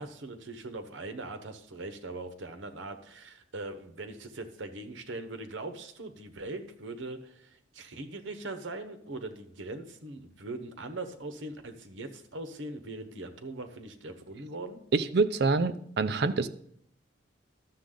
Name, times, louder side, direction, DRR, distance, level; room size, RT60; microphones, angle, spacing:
voice 1, 0.0-14.8, right 2 dB, 90° right, 8 dB, 1.0 m, -41 dB
voice 2, 14.9-16.5, right 3 dB, 60° right, 12 dB, 0.5 m, -26 dB
11.5 x 7.2 x 3.8 m, 0.68 s
head